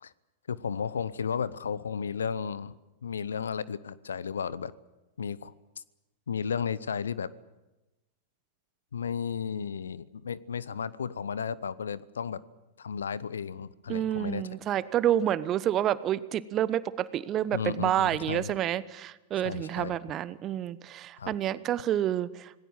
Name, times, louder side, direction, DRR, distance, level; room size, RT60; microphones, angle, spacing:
voice 1, 0.5-4.7 5.2-5.5 6.3-7.3 8.9-12.4 12.8-14.4 17.5-18.5 19.4-20.0 21.2-21.3, left 6 dB, 75° left, 20 dB, 0.8 m, -34 dB
voice 2, 13.9-22.6, right 11 dB, 35° right, 17 dB, 1.0 m, -29 dB
26.5 x 19.0 x 7.4 m, 1.1 s
figure-of-eight pair, 95°, 0 cm